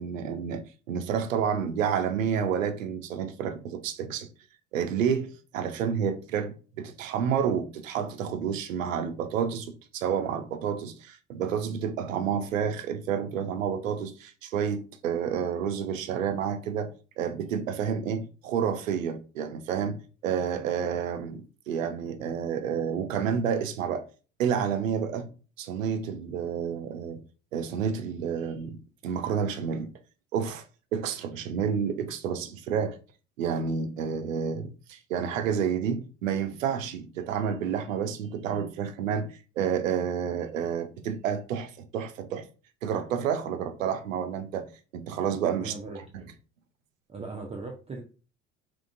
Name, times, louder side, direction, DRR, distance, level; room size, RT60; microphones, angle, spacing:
voice 1, 0.0-4.3 4.7-24.0 24.4-25.3 25.6-27.2 27.5-29.9 30.3-30.6 30.9-33.0 33.4-39.3 39.6-42.4 42.8-45.7 46.1-46.2, right 7 dB, 80° right, 0.6 m, -30 dB
voice 2, 45.6-46.1 47.1-48.0, right 3 dB, 15° right, 0.5 m, -38 dB
3.6 x 3.1 x 2.5 m
figure-of-eight pair, 65°, 39 cm